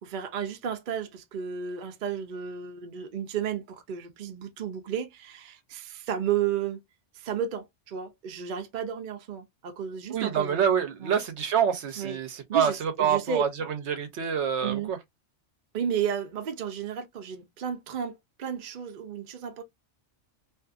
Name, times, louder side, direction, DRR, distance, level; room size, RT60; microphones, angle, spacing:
voice 1, 0.0-6.8 7.2-10.6 11.0-11.2 12.0-12.2 12.5-13.4 14.6-14.9 15.7-19.6, right 8 dB, 55° right, 0.6 m, -33 dB
voice 2, 10.1-15.0, right 8 dB, 70° right, 0.9 m, -26 dB
2.5 x 2.5 x 2.4 m
omnidirectional pair, 1.2 m